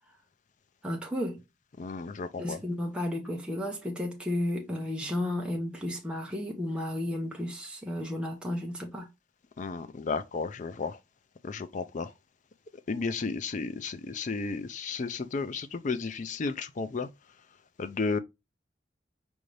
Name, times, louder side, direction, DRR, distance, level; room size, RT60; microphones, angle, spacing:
voice 1, 0.8-1.4 2.4-9.1, left 1 dB, 5° right, 0.7 m, -33 dB
voice 2, 1.8-2.6 9.6-11.0 11.4-12.1 12.9-17.1 17.8-18.2, left 4 dB, 40° left, 0.4 m, -33 dB
4.7 x 2.6 x 3.2 m
head